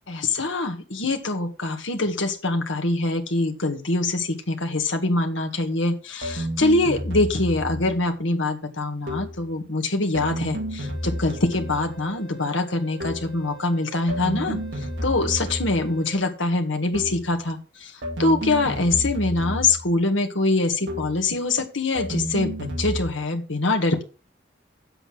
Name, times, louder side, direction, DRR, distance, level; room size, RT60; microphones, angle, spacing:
voice 1, 0.1-24.0, left 2 dB, 85° left, 4 dB, 1.7 m, -24 dB
sound 1, 6.2-8.0 9.1-9.5 10.1-12.0 13.0-13.4 14.1-16.0 16.9-17.4 18.0-20.0 20.9-21.3 22.0-23.1, equal, 75° right, 2.1 m, -31 dB
sound 2, 10.8-16.1, right 10 dB, 5° left, 2.3 m, -46 dB
8.1 x 7.8 x 6.0 m, 0.34 s
head